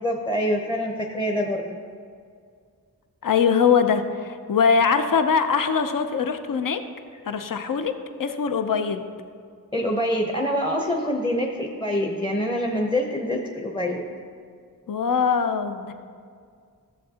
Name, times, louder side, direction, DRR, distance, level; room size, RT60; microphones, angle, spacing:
voice 1, 0.0-1.8 9.7-14.1, equal, 15° left, 1 dB, 0.8 m, -25 dB
voice 2, 3.2-6.8 7.3-7.9 8.2-9.0 14.9-15.9, left 6 dB, 60° left, 8 dB, 0.6 m, -22 dB
13.5 x 7.5 x 2.8 m, 2.2 s
wide cardioid pair, 55°, 38 cm